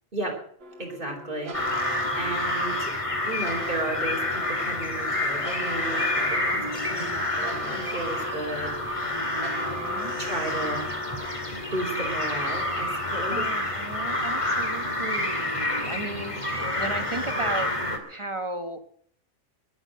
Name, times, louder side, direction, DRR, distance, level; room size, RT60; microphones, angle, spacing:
voice 1, 0.1-0.4 0.8-1.5 2.1-2.9 3.2-6.6 6.9-7.1 7.3-9.1 10.2-11.0 11.7-13.4, right 2 dB, 45° right, 2 dB, 3.9 m, -33 dB
sound 1, 0.6-18.2, left 1 dB, 70° right, 1.8 m, -43 dB
voice 2, 1.0-2.5 6.5-7.6 9.1-10.2 13.3-18.8, right 2 dB, 25° right, 7 dB, 1.3 m, -37 dB
sound 2, 1.5-18.0, left 1 dB, 25° left, 2.2 m, -28 dB
20.5 x 7.5 x 7.6 m, 0.62 s
omnidirectional pair, 1.3 m